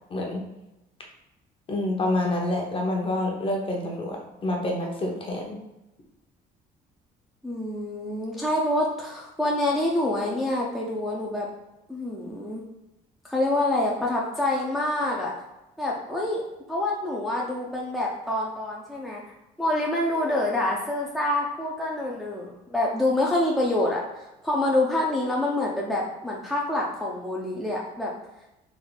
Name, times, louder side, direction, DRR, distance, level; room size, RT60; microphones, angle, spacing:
voice 1, 0.1-0.5 1.7-5.6, left 1 dB, 30° left, 0 dB, 0.9 m, -27 dB
voice 2, 7.4-11.5 11.9-12.6 13.3-15.3 15.8-16.4 16.7-19.2 19.6-28.1, left 1 dB, ahead, -4 dB, 0.6 m, -26 dB
3.5 x 2.6 x 3.9 m, 0.93 s
cardioid pair, 110°, 17 cm